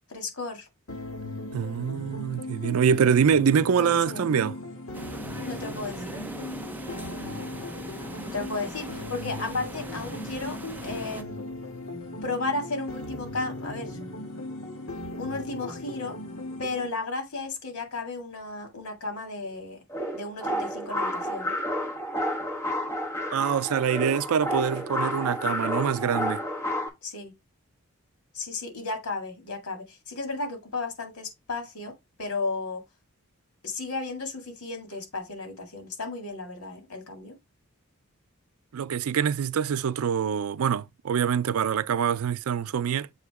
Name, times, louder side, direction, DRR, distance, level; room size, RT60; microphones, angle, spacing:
voice 1, 0.1-0.7 3.7-4.3 5.4-6.2 8.2-11.6 12.2-14.0 15.2-16.2 16.6-19.8 20.1-21.6 27.0-27.3 28.3-31.9 32.2-32.8 33.6-37.4, left 3 dB, 85° left, 2.0 m, -34 dB
sound 1, 0.9-16.9, left 2 dB, 65° left, 1.6 m, -38 dB
voice 2, 1.5-4.6 23.3-26.4 38.7-43.1, right 7 dB, 80° right, 0.4 m, -25 dB
sound 2, 4.9-11.2, right 1 dB, 10° right, 0.5 m, -40 dB
sound 3, 19.9-26.9, equal, 10° left, 1.0 m, -30 dB
7.1 x 2.9 x 4.7 m
head